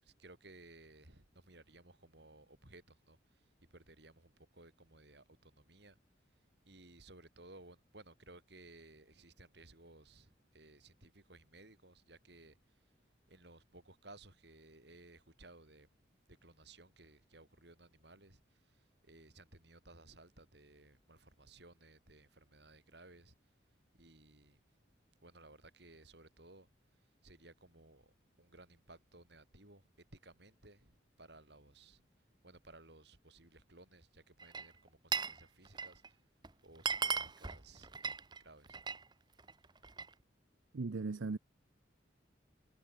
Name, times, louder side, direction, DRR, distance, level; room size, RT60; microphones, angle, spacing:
voice 1, 0.0-6.0 6.7-12.9 13.3-16.0 16.3-23.4 23.9-24.6 25.2-26.7 27.0-28.1 28.4-32.0 32.4-36.2 36.6-38.8, right 2 dB, 60° right, 4.7 m, -59 dB
Glass, 34.4-35.4 35.7-36.1 36.4-36.5 36.8-39.0 39.4-40.1, right 5 dB, 20° right, 0.8 m, -38 dB
voice 2, 40.7-41.4, right 3 dB, 85° right, 0.6 m, -37 dB
head